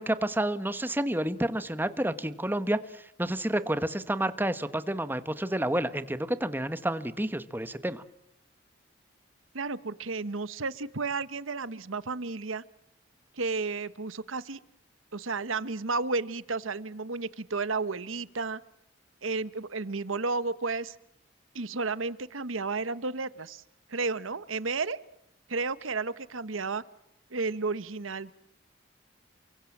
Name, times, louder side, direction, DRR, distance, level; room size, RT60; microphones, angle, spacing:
voice 1, 0.0-8.0, right 1 dB, 10° right, 12 dB, 1.2 m, -30 dB
voice 2, 9.5-12.6 13.4-14.6 15.1-18.6 19.2-21.0 21.5-23.6 23.9-25.0 25.5-26.8 27.3-28.3, right 4 dB, 90° right, 16 dB, 1.1 m, -32 dB
29.5 x 24.0 x 7.3 m, 0.78 s
head